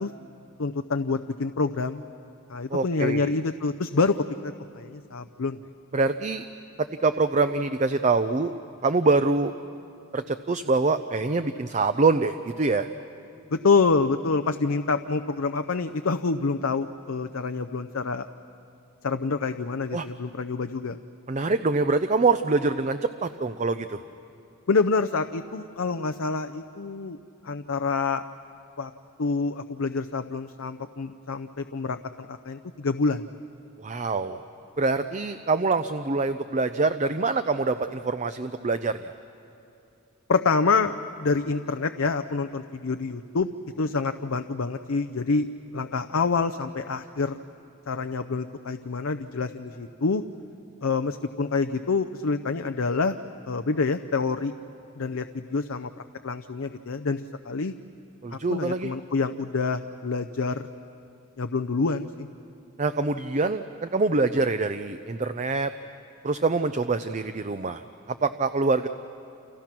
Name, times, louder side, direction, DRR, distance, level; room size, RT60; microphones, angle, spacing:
voice 1, 0.6-2.0 2.5-4.2 4.4-5.6 13.5-18.3 19.0-21.0 24.7-27.2 27.4-28.2 28.8-28.9 29.2-33.3 40.3-43.5 43.8-45.5 45.7-47.4 47.9-50.2 50.8-53.2 53.5-54.5 55.0-55.9 56.2-57.7 58.3-60.7 61.4-62.3, left 4 dB, 70° left, 8 dB, 0.6 m, -27 dB
voice 2, 2.7-3.3 5.9-6.4 7.0-8.5 8.8-9.5 10.1-12.9 19.9-20.1 21.3-24.0 33.8-34.4 34.8-39.1 58.2-58.9 62.8-65.7 66.2-67.8 68.1-68.9, right 3 dB, 35° right, 10 dB, 0.6 m, -25 dB
30.0 x 28.0 x 6.0 m, 2.7 s
head